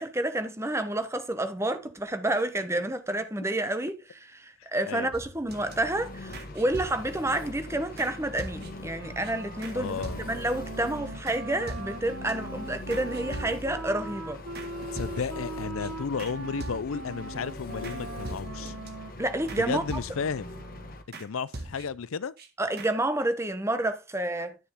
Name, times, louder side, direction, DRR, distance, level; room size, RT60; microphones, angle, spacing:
voice 1, 0.0-14.4 19.2-20.0 22.6-24.6, right 1 dB, 15° right, 0.9 m, -29 dB
sound 1, 5.1-5.7 6.3-7.3 8.0-8.1 8.4-8.9 9.2-9.3 9.6-9.8 10.0-10.6 11.3-11.4 11.7-12.3 12.9-13.8 14.5-14.7 15.0-15.5 15.8-15.9 16.2-16.3 16.6-17.1 17.8-18.0 18.2-18.9 19.5-20.4 21.1-21.3 21.5-22.1 22.4-22.5 22.8-22.9, right 2 dB, 45° right, 1.8 m, -41 dB
Engine, 5.5-21.0, left 2 dB, 40° left, 1.3 m, -42 dB
Wind instrument woodwind instrument, 8.9-21.0, right 2 dB, 75° right, 1.4 m, -41 dB
voice 2, 9.7-10.2 14.9-18.7 19.5-20.5 21.2-22.3, left 5 dB, 75° left, 0.5 m, -33 dB
11.0 x 6.9 x 3.6 m
head